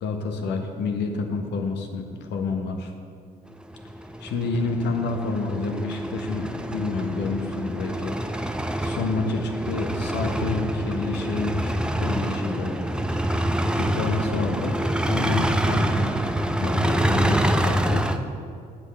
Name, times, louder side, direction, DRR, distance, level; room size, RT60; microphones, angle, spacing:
voice 1, 0.0-2.9 4.2-8.5 8.8-12.9 13.1-13.2 13.8-14.8 15.0-16.1 16.6-18.1, left 3 dB, 60° left, 4 dB, 1.5 m, -29 dB
sound 1, 3.6-18.2, right 1 dB, 5° right, 0.8 m, -26 dB
17.5 x 8.1 x 3.5 m, 2.3 s
figure-of-eight pair, 45°, 20 cm